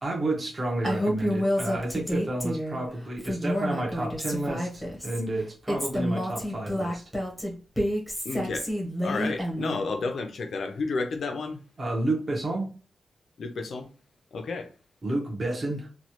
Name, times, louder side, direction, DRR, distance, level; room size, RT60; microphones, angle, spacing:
voice 1, 0.0-7.0 11.8-12.7 15.0-15.9, right 2 dB, 30° right, 0.9 m, -30 dB
Female speech woman speaking, 0.8-2.8 3.2-5.2 5.7-9.8, equal, ahead, 0.9 m, -29 dB
voice 2, 8.2-8.7 9.0-11.6 13.4-13.9 14.3-14.7, left 3 dB, 65° left, 0.5 m, -31 dB
3.0 x 2.3 x 2.8 m
wide cardioid pair, 160°, 0 cm